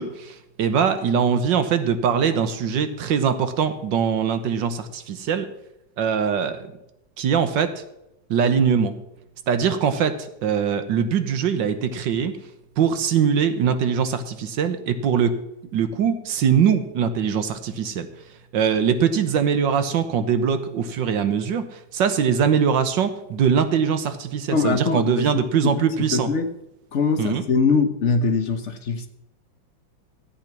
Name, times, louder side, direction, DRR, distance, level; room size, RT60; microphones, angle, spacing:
voice 1, 0.0-5.5 6.0-6.7 7.2-7.7 8.3-8.9 9.5-12.3 12.8-15.3 15.7-18.1 18.5-26.3 27.2-27.4, right 7 dB, 75° right, 10 dB, 1.6 m, -22 dB
voice 2, 24.5-25.7 26.1-26.5 26.9-29.1, left 4 dB, 50° left, 7 dB, 1.0 m, -22 dB
13.5 x 8.4 x 5.9 m, 0.85 s
omnidirectional pair, 2.1 m